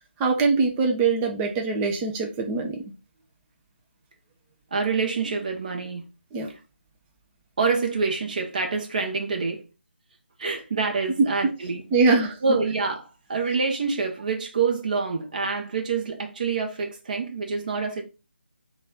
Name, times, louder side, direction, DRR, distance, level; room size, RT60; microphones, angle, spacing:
voice 1, 0.2-2.8 6.3-6.5 11.2-11.5 11.9-12.4, right 4 dB, 10° right, 0.3 m, -22 dB
voice 2, 4.7-6.0 7.6-9.6 10.4-11.8 12.4-18.0, right 4 dB, 45° right, 0.7 m, -26 dB
3.9 x 2.3 x 3.8 m
figure-of-eight pair, 150°, 6 cm